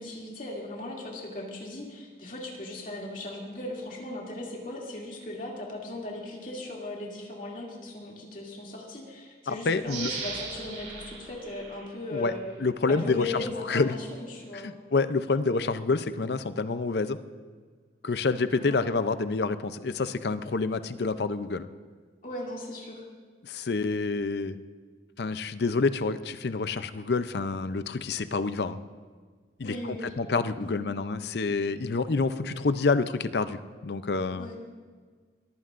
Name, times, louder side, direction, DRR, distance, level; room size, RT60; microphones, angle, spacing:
voice 1, 0.0-12.4 12.9-14.7 18.5-18.8 22.2-23.1 29.6-30.1 30.6-30.8 34.3-34.6, left 2 dB, 45° left, -2 dB, 2.6 m, -38 dB
voice 2, 9.5-10.1 12.1-12.3 12.6-13.9 14.5-17.2 18.0-21.7 23.4-24.6 25.2-28.8 29.6-34.5, left 4 dB, 70° left, 12 dB, 0.6 m, -28 dB
sound 1, 9.8-12.5 13.0-13.1, right 4 dB, 60° right, 3.1 m, -39 dB
22.0 x 14.5 x 2.6 m, 1.5 s
head